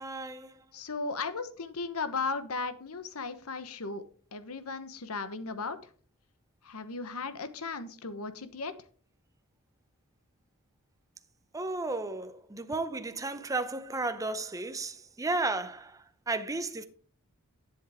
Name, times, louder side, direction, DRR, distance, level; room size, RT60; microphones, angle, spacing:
voice 1, 0.0-0.6 11.5-16.8, right 2 dB, 15° right, 0.6 m, -34 dB
voice 2, 0.7-4.0 4.3-5.8 6.6-8.7, left 4 dB, 75° left, 1.1 m, -36 dB
11.0 x 7.8 x 3.6 m
head